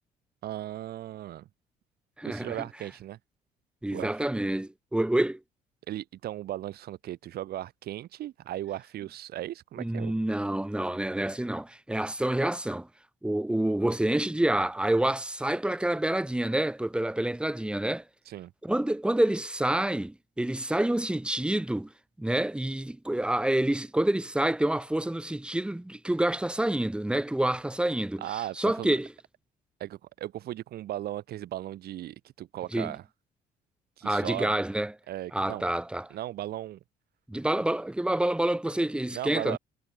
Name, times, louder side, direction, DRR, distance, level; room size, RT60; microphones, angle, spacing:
voice 1, 0.4-1.5 2.2-3.2 3.9-4.1 5.9-10.1 18.3-18.5 28.2-29.0 29.8-33.0 34.0-34.5 35.1-35.6 36.1-36.8 39.1-39.6, right 13 dB, 70° right, 4.3 m, -37 dB
voice 2, 2.2-2.6 3.8-5.4 9.8-12.9 13.2-18.0 18.6-21.9 22.2-29.1 32.7-32.9 34.0-34.9 35.3-36.1 37.3-39.6, right 1 dB, 5° right, 1.8 m, -28 dB
cardioid pair, 110°, 17 cm